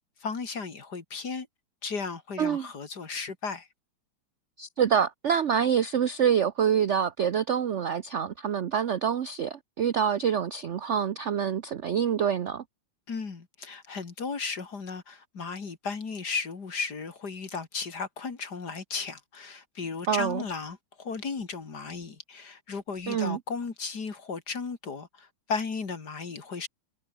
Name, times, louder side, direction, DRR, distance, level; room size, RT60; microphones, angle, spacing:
voice 1, 0.2-1.5 1.8-3.7 13.1-26.7, left 4 dB, 50° left, 3.0 m, -35 dB
voice 2, 4.6-12.6 20.1-20.4 23.1-23.4, right 8 dB, 60° right, 0.7 m, -26 dB
omnidirectional pair, 2.3 m